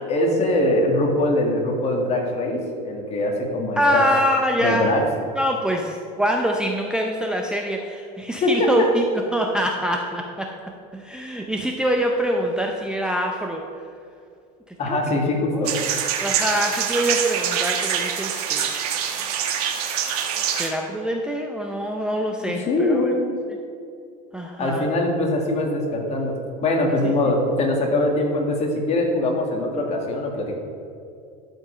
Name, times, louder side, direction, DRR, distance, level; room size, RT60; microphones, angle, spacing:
voice 1, 0.1-4.0 4.6-5.0 8.4-8.9 14.8-15.7 22.4-23.3 24.6-26.3 26.6-30.6, left 1 dB, 35° left, 1 dB, 1.8 m, -22 dB
voice 2, 3.8-4.8 5.4-9.0 9.3-10.5 10.9-13.6 14.9-15.0 15.5-15.7 16.2-18.7 20.5-23.1 23.5-23.6 24.3-24.8 27.0-27.1, equal, 5° right, 1 dB, 0.6 m, -24 dB
sound 1, 15.6-20.7, right 8 dB, 85° right, 1.1 m, -25 dB
12.0 x 5.3 x 5.0 m, 2.5 s
supercardioid pair, 130°, 19 cm